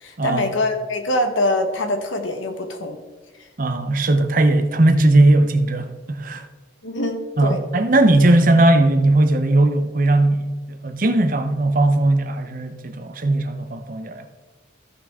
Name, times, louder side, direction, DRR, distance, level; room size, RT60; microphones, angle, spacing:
voice 1, 0.0-3.0 6.8-7.6, left 1 dB, 80° left, 1.4 m, -24 dB
voice 2, 3.6-6.5 7.4-14.3, right 2 dB, 45° right, 0.7 m, -18 dB
14.5 x 5.9 x 3.6 m
head